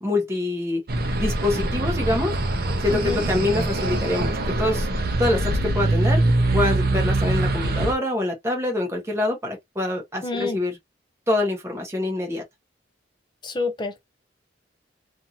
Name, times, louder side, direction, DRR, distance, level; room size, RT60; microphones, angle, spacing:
voice 1, 0.0-0.8 1.2-2.4 2.8-4.9 5.2-6.2 6.5-10.8 11.3-12.4, left 2 dB, 15° right, 0.8 m, -25 dB
sound 1, 0.9-7.9, right 2 dB, 55° right, 0.6 m, -23 dB
voice 2, 2.9-3.2 10.2-10.6 13.4-14.0, left 3 dB, 25° left, 0.4 m, -28 dB
2.5 x 2.5 x 2.7 m
head